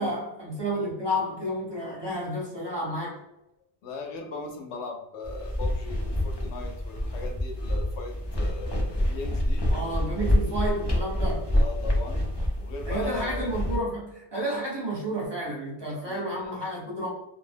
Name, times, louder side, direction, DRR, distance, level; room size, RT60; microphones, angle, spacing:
voice 1, 0.0-3.2 9.7-11.5 12.8-17.1, right 1 dB, 25° right, -5 dB, 0.9 m, -31 dB
voice 2, 3.8-9.6 10.1-10.6 11.5-12.2 12.6-13.6 16.0-16.5, left 4 dB, 85° left, 2 dB, 1.0 m, -39 dB
sound 1, 5.2-13.8, left 1 dB, 30° left, 0.5 m, -27 dB
2.6 x 2.0 x 3.4 m, 0.87 s
omnidirectional pair, 1.1 m